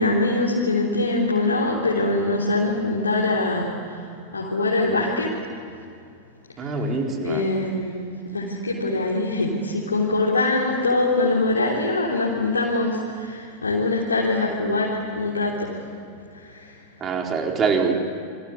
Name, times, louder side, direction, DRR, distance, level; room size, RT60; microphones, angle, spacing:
voice 1, 0.0-5.3 6.6-7.0 7.2-8.1 8.3-15.8 16.3-16.8, left 2 dB, 75° left, -4 dB, 3.5 m, -23 dB
voice 2, 6.6-7.5 17.0-17.9, right 4 dB, 25° right, 2 dB, 4.1 m, -24 dB
29.0 x 23.5 x 8.3 m, 2.4 s
figure-of-eight pair, 90°, 0 cm